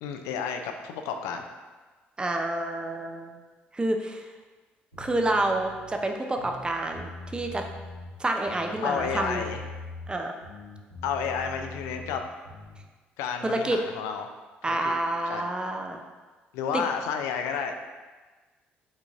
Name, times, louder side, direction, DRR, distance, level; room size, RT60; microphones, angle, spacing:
voice 1, 0.0-1.4 8.8-9.6 11.0-12.2 13.2-14.3 14.7-14.9 15.3-15.4 16.5-17.7, left 7 dB, 65° left, 5 dB, 0.4 m, -31 dB
voice 2, 2.2-3.4 3.7-4.3 5.0-7.7 8.2-9.4 10.1-10.3 13.4-13.8 14.6-16.0 16.7-16.8, right 2 dB, 15° right, 4 dB, 0.5 m, -28 dB
sound 1, 4.9-6.0 6.3-8.1 8.4-10.1 10.4-12.8, left 3 dB, 85° left, 1.4 m, -42 dB
5.2 x 3.9 x 2.4 m, 1.3 s
figure-of-eight pair, 50°, 6 cm